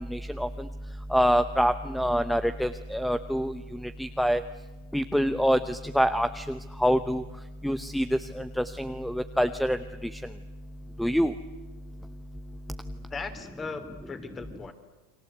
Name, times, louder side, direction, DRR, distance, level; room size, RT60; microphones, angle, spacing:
voice 1, 0.1-0.5 1.1-3.5 4.0-4.4 4.9-6.4 6.8-7.2 7.6-8.1 8.4-9.8 11.0-11.3, equal, ahead, 11 dB, 0.8 m, -25 dB
voice 2, 12.9-14.7, left 4 dB, 20° left, 9 dB, 3.2 m, -38 dB
30.0 x 23.0 x 8.1 m, 1.1 s
supercardioid pair, 125°, 0 cm